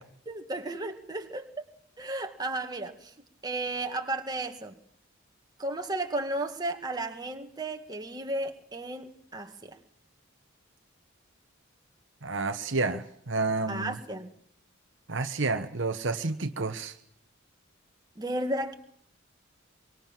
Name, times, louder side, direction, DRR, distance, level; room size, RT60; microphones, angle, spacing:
voice 1, 0.3-1.5 2.0-3.1 3.4-4.8 5.6-9.8 13.7-14.3 18.2-18.7, right 2 dB, 20° right, 4 dB, 2.1 m, -34 dB
voice 2, 12.2-14.0 15.1-16.9, right 3 dB, 60° right, 8 dB, 1.2 m, -30 dB
24.5 x 23.5 x 7.5 m, 0.65 s
head